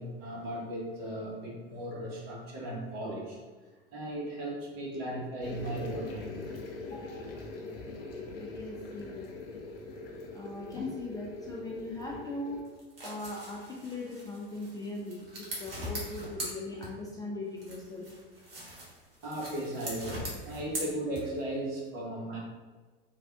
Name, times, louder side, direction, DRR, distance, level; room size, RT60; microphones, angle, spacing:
voice 1, 0.0-3.4 3.9-6.5 19.2-22.4, right 1 dB, 50° right, -4 dB, 1.4 m, -37 dB
sound 1, 5.4-12.6, left 3 dB, 70° left, 0.7 m, -42 dB
voice 2, 6.8-7.2 8.4-9.6 10.3-12.6 13.0-18.1, left 2 dB, 15° left, -3 dB, 0.4 m, -40 dB
sound 2, 12.6-17.2 17.6-21.6, equal, 70° right, 1.3 m, -41 dB
3.4 x 2.4 x 3.4 m, 1.4 s
figure-of-eight pair, 85°, 30 cm